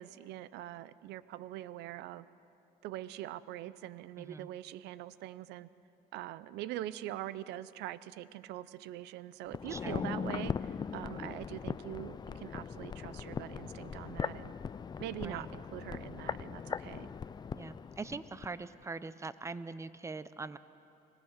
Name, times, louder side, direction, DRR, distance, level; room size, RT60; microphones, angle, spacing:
voice 1, 0.0-2.3 2.8-5.7 6.1-14.5 15.0-17.1, right 13 dB, 85° right, 17 dB, 0.6 m, -43 dB
voice 2, 4.2-4.5 9.7-10.1 15.2-15.5 17.5-20.6, right 3 dB, 15° right, 14 dB, 0.7 m, -42 dB
sound 1, 9.5-18.5 18.8-18.9, left 6 dB, 25° left, 0.4 m, -40 dB
25.0 x 18.5 x 6.5 m, 2.9 s
cardioid pair, 110°, 17 cm